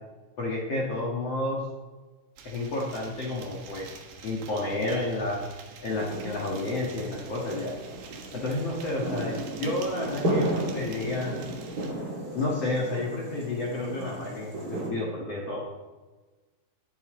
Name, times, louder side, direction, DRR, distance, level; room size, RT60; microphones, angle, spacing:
voice 1, 0.4-1.6 2.4-3.9 4.2-5.4 5.8-7.7 8.3-11.3 12.3-15.6, left 2 dB, 50° left, -3 dB, 1.9 m, -30 dB
sound 1, 2.4-11.9, right 6 dB, 65° right, 2.7 m, -47 dB
sound 2, 5.9-14.9, right 1 dB, 25° right, 2.1 m, -34 dB
21.0 x 9.0 x 3.8 m, 1.2 s
omnidirectional pair, 5.4 m